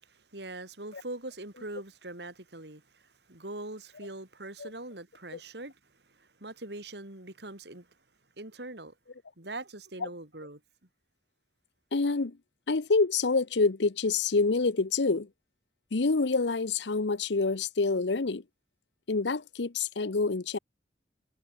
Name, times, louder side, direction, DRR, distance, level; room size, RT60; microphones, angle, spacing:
voice 1, 0.0-7.9 8.4-8.9 9.4-10.6, right 2 dB, 70° right, 3.9 m, -42 dB
voice 2, 11.9-12.4 12.7-15.3 15.9-18.4 19.1-20.6, left 3 dB, 80° left, 0.8 m, -27 dB
head